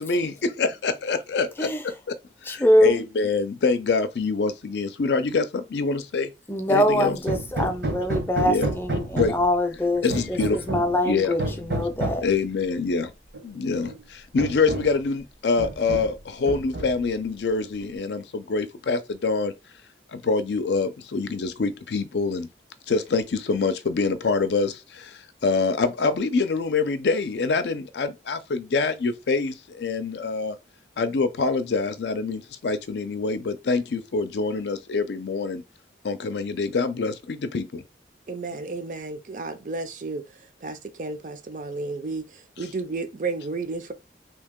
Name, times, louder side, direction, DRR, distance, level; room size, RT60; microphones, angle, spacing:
voice 1, 0.0-1.7 2.5-6.3 6.7-7.2 8.4-8.7 9.1-9.3 10.0-11.4 12.2-13.1 13.4-19.5 20.1-22.5 22.9-30.6 31.0-35.6 36.0-37.8, left 4 dB, 75° left, 0.5 m, -25 dB
voice 2, 2.5-3.0 6.5-12.2, equal, 10° left, 0.5 m, -23 dB
Hammer, 7.3-9.6 10.1-11.0 11.4-12.3 13.3-13.4 13.9-14.0 14.4-15.0 15.6-16.2 16.5-17.1, right 2 dB, 75° right, 1.0 m, -30 dB
voice 3, 38.3-40.2 40.6-43.9, right 3 dB, 45° right, 0.5 m, -32 dB
2.8 x 2.7 x 3.6 m
head